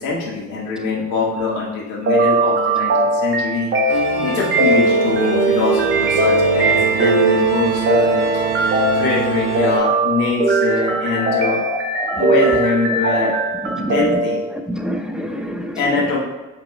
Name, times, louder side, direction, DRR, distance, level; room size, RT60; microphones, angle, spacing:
voice 1, 0.0-8.2 8.6-11.6 12.2-13.3 13.7-14.4 15.7-16.2, left 4 dB, 55° left, -4 dB, 1.9 m, -23 dB
sound 1, 2.1-14.4, right 2 dB, 30° right, 1.1 m, -19 dB
sound 2, 3.9-9.8, right 5 dB, 55° right, 1.0 m, -23 dB
voice 2, 11.3-12.3 13.2-13.4 13.6-14.1 14.7-15.8, equal, ahead, 4 dB, 0.6 m, -27 dB
8.7 x 3.4 x 3.4 m, 1.2 s
figure-of-eight pair, 55°, 37 cm